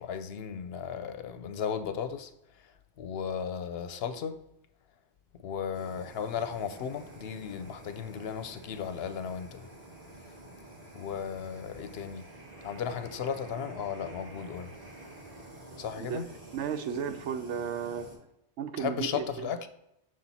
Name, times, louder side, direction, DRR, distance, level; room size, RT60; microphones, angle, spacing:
voice 1, 0.0-2.3 3.0-4.4 5.4-9.7 10.9-12.3 12.6-14.7 15.8-16.2 18.8-19.7, left 7 dB, 65° left, 0.8 m, -35 dB
Fire, 5.7-18.2, right 1 dB, 30° right, 2.1 m, -49 dB
voice 2, 16.5-18.1 18.6-19.5, right 7 dB, 85° right, 0.9 m, -34 dB
6.3 x 4.3 x 4.1 m
omnidirectional pair, 1.2 m